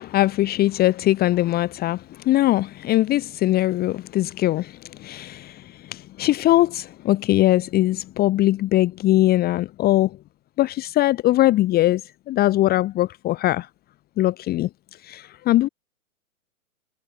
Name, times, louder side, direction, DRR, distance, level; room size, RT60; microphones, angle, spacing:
voice 1, 0.0-10.1 10.6-12.0 12.3-13.7 14.2-14.7 15.0-15.7, left 15 dB, 20° left, 1.2 m, -21 dB
hypercardioid pair, 130°, 42 cm